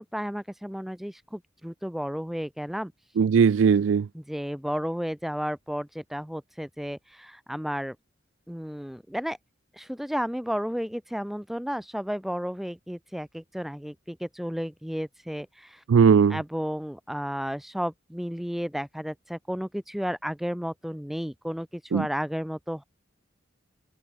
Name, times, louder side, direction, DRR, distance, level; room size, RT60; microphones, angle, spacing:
voice 1, 0.0-2.9 4.3-8.0 8.5-9.4 9.7-15.8 16.3-22.8, equal, ahead, 0.6 m, -33 dB
voice 2, 3.2-4.1 15.9-16.4 21.9-22.1, right 6 dB, 75° right, 0.4 m, -19 dB
head